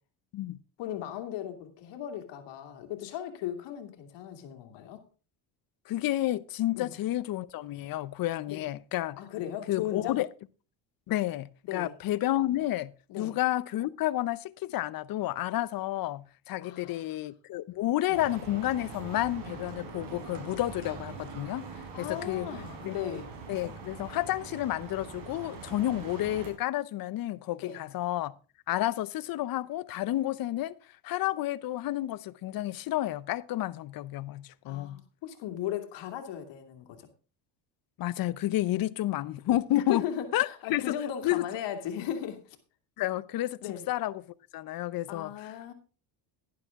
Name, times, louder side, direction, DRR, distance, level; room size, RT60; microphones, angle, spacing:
voice 1, 0.8-5.1 6.7-6.9 8.5-8.6 9.2-10.2 11.7-11.9 13.1-13.4 16.6-17.2 18.1-18.2 21.9-23.3 25.8-25.9 27.6-27.8 34.6-37.1 39.7-42.6 43.6-43.9 45.1-45.7, left 10 dB, 75° left, 2.4 m, -37 dB
voice 2, 5.9-9.2 9.7-10.3 11.1-12.9 13.2-21.7 22.0-22.5 22.8-22.9 23.5-28.3 28.7-30.7 31.0-35.0 38.0-40.0 40.3-40.8 41.2-41.4 43.0-43.6 43.9-44.1 44.5-45.3, left 15 dB, 55° left, 0.7 m, -30 dB
sound 1, 18.1-26.5, right 5 dB, 75° right, 5.0 m, -43 dB
11.5 x 11.0 x 3.7 m
cardioid pair, 115°, 43 cm